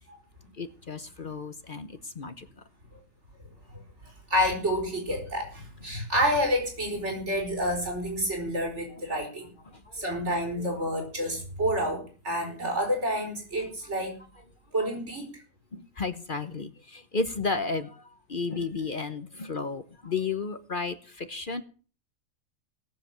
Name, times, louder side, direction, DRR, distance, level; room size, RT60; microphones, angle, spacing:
voice 1, 0.6-2.5 15.7-18.0 18.3-21.6, left 4 dB, 45° left, 10 dB, 1.1 m, -33 dB
voice 2, 4.3-9.5 9.9-14.2 14.7-15.3, equal, 60° right, 1 dB, 5.3 m, -29 dB
17.5 x 7.7 x 7.5 m, 0.40 s
omnidirectional pair, 1.3 m